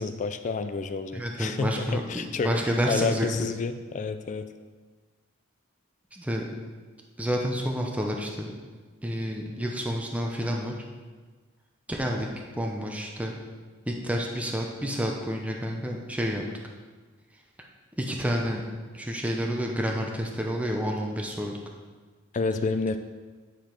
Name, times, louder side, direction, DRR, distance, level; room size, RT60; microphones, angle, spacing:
voice 1, 0.0-2.6 2.9-4.5 22.3-23.0, left 4 dB, 40° left, 10 dB, 0.4 m, -29 dB
voice 2, 1.1-3.3 6.1-6.5 7.2-8.5 9.0-10.7 11.9-12.3 12.5-13.3 13.9-16.4 18.0-18.6 18.9-21.6, equal, 5° right, 0 dB, 0.6 m, -29 dB
9.6 x 5.0 x 4.4 m, 1.4 s
head